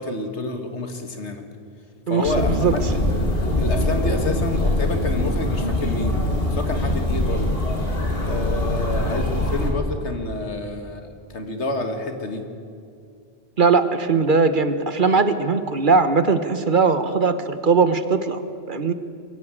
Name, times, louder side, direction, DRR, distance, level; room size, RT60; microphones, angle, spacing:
voice 1, 0.0-1.4 2.1-3.0 3.6-6.2 6.5-7.6 8.2-12.5, left 2 dB, 80° left, 6 dB, 2.2 m, -29 dB
voice 2, 2.1-2.7 13.6-18.4 18.7-18.9, right 4 dB, 50° right, 11 dB, 1.2 m, -19 dB
sound 1, 2.2-9.7, left 1 dB, 60° left, 2.8 m, -23 dB
23.0 x 16.0 x 9.1 m, 2.4 s
omnidirectional pair, 1.1 m